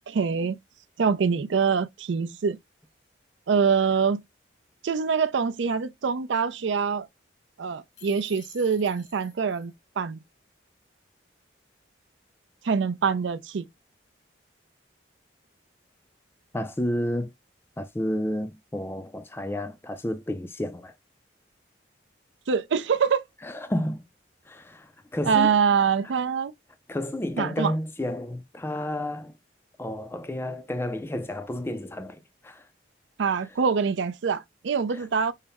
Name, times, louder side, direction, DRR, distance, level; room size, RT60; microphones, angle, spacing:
voice 1, 0.1-0.6 1.0-2.6 3.5-4.2 4.8-7.1 7.6-10.2 12.6-13.7 22.5-23.2 25.3-26.5 27.4-27.7 33.2-35.3, right 6 dB, 75° right, 0.4 m, -24 dB
sound 1, 7.9-9.7, left 7 dB, 65° left, 0.9 m, -50 dB
voice 2, 16.5-17.3 17.8-20.9 23.4-24.1 24.5-25.5 26.9-29.3 29.8-32.6 34.9-35.1, left 1 dB, 10° left, 0.3 m, -31 dB
5.5 x 2.0 x 3.4 m
head